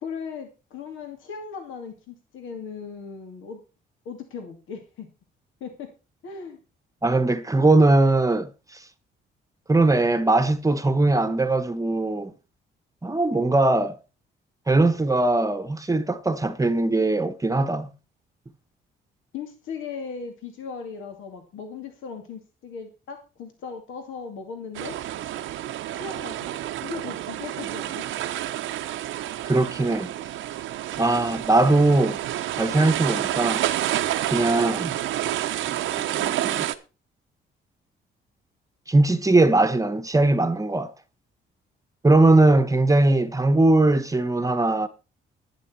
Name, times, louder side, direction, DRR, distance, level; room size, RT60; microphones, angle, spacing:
voice 1, 0.0-3.6 4.0-5.1 5.6-5.9 6.2-6.6 19.3-25.0 25.9-28.0, left 5 dB, 80° left, 2.5 m, -37 dB
voice 2, 7.0-8.5 9.7-12.3 13.0-14.0 14.7-17.9 29.4-30.1 31.0-32.2 32.6-33.6 34.3-34.9 35.8-36.7 38.9-40.9 42.0-44.9, right 2 dB, 15° right, 1.0 m, -20 dB
sound 1, 24.7-36.7, right 13 dB, 85° right, 0.9 m, -29 dB
11.5 x 10.5 x 4.4 m
cardioid pair, 90°, 20 cm